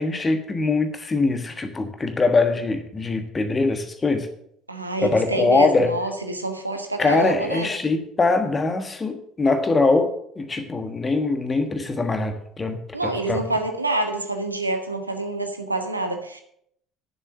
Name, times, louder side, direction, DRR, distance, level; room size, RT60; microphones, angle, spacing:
voice 1, 0.0-4.3 5.0-5.9 7.0-13.4, left 3 dB, 25° left, 7 dB, 1.4 m, -22 dB
voice 2, 4.7-7.7 12.9-16.4, right 2 dB, 85° right, 6 dB, 1.1 m, -27 dB
10.0 x 7.4 x 6.9 m, 0.70 s
figure-of-eight pair, 60°, 0 cm